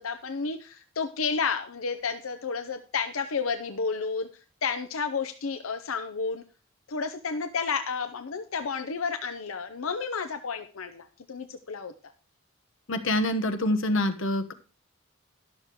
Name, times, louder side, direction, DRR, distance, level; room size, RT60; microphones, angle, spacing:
voice 1, 0.0-4.3 4.6-6.4 6.9-11.9, left 5 dB, 90° left, 8 dB, 0.7 m, -31 dB
voice 2, 12.9-14.5, left 1 dB, 65° left, 6 dB, 1.2 m, -26 dB
11.5 x 6.6 x 4.6 m, 0.36 s
head